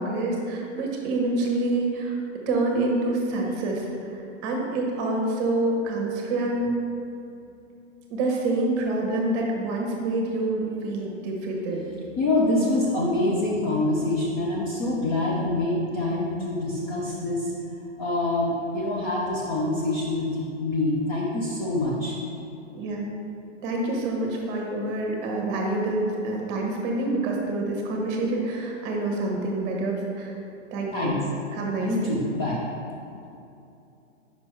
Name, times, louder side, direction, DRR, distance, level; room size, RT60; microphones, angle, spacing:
voice 1, 0.0-2.2 2.5-3.9 4.1-6.7 8.1-11.8 22.7-23.1 23.6-30.3 30.7-31.2 31.5-32.2, right 2 dB, 25° right, 0 dB, 1.0 m, -27 dB
voice 2, 12.2-17.5 18.0-22.1 30.9-31.2 31.8-32.6, left 2 dB, 20° left, -5 dB, 0.4 m, -25 dB
5.3 x 4.4 x 4.5 m, 2.7 s
hypercardioid pair, 140°, 38 cm